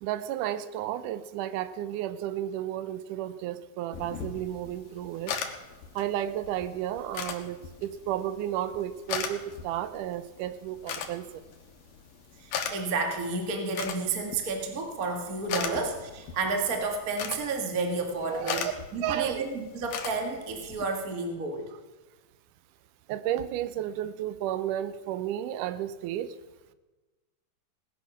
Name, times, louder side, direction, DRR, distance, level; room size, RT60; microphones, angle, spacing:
voice 1, 0.0-5.3 6.0-11.3 15.5-15.9 18.3-18.7 19.0-19.5 23.1-26.4, right 11 dB, 75° right, 14 dB, 2.2 m, -32 dB
sound 1, 3.9-20.8, left 7 dB, 85° left, 3.1 m, -39 dB
voice 2, 12.4-18.6 18.9-21.7, right 3 dB, 35° right, 3 dB, 1.6 m, -31 dB
18.5 x 11.0 x 5.9 m, 1.2 s
omnidirectional pair, 3.9 m